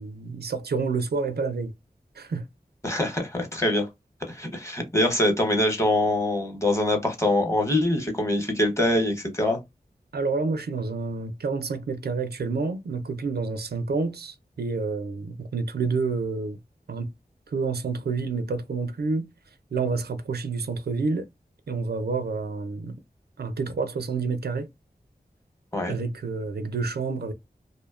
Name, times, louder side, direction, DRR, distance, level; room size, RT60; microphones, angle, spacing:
voice 1, 0.0-1.7 2.1-2.5 10.1-16.6 16.9-17.1 17.5-19.3 19.7-21.3 21.7-23.0 23.4-24.7 25.9-27.3, right 4 dB, 85° right, 0.4 m, -28 dB
voice 2, 2.8-3.9 4.3-9.6 25.7-26.0, left 1 dB, 20° left, 0.9 m, -24 dB
2.6 x 2.1 x 2.3 m
wide cardioid pair, 60°, 16 cm